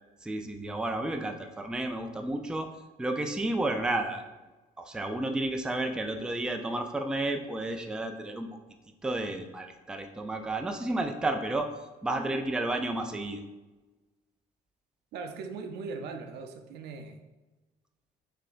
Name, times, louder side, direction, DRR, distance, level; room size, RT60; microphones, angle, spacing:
voice 1, 0.2-2.7 3.0-4.2 4.8-8.5 9.0-11.7 12.0-13.4, right 2 dB, 5° right, 5 dB, 0.3 m, -31 dB
voice 2, 15.1-17.2, right 4 dB, 75° right, 5 dB, 0.6 m, -39 dB
5.6 x 3.3 x 2.5 m, 1.1 s
cardioid pair, 110°, 17 cm